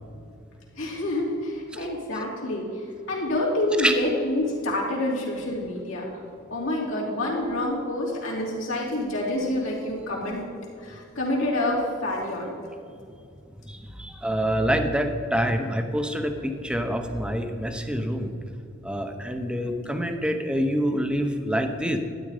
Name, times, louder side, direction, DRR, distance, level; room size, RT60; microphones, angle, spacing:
voice 1, 0.7-6.1 6.5-10.4 10.8-12.6, left 1 dB, 75° left, -4 dB, 3.1 m, -27 dB
voice 2, 13.7-18.3 18.8-22.0, equal, 5° right, 6 dB, 0.8 m, -26 dB
12.5 x 9.2 x 4.9 m, 2.5 s
head